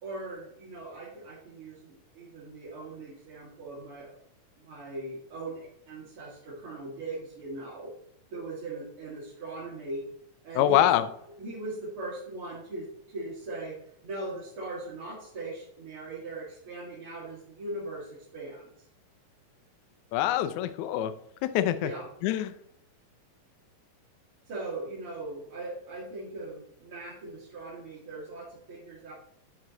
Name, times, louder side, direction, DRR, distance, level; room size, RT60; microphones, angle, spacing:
voice 1, 0.0-4.2 4.6-7.9 8.3-10.0 10.4-10.9 11.4-13.8 14.0-18.7 21.8-22.1 24.5-29.1, right 2 dB, 45° right, -7 dB, 2.4 m, -39 dB
voice 2, 10.5-11.1 20.1-21.1 21.5-21.9 22.2-22.5, left 12 dB, 80° left, 11 dB, 1.7 m, -24 dB
11.0 x 4.3 x 3.9 m, 0.72 s
omnidirectional pair, 4.0 m